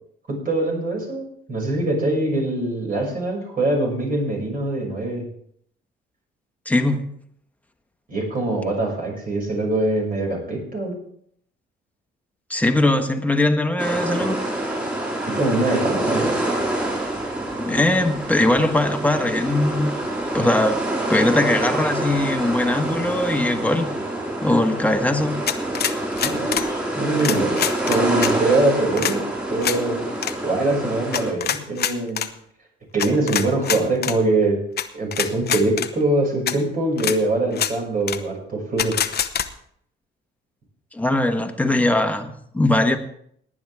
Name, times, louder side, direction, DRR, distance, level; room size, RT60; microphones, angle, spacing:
voice 1, 0.3-5.3 8.1-10.9 15.3-16.3 26.1-27.5 27.9-30.1 30.4-32.3 32.9-34.6 34.9-39.0, right 2 dB, 45° right, -1 dB, 6.7 m, -23 dB
voice 2, 6.6-7.1 12.5-14.4 17.6-19.9 20.3-20.8 21.1-23.9 24.4-25.4 40.9-43.0, left 1 dB, 5° left, 5 dB, 1.5 m, -20 dB
sound 1, 13.8-31.3, right 1 dB, 10° right, 5.2 m, -26 dB
sound 2, 25.5-26.7 27.2-28.3 29.0-29.2 29.6-29.8 30.2-30.3 31.1-32.3 33.0-34.2 34.8-34.9 35.1-35.9 36.5-36.6 37.0-37.2 37.5-37.7 38.1-38.2 38.8-39.5, left 9 dB, 55° left, 0.9 m, -24 dB
18.5 x 9.8 x 3.6 m, 0.66 s
cardioid pair, 90°, 20 cm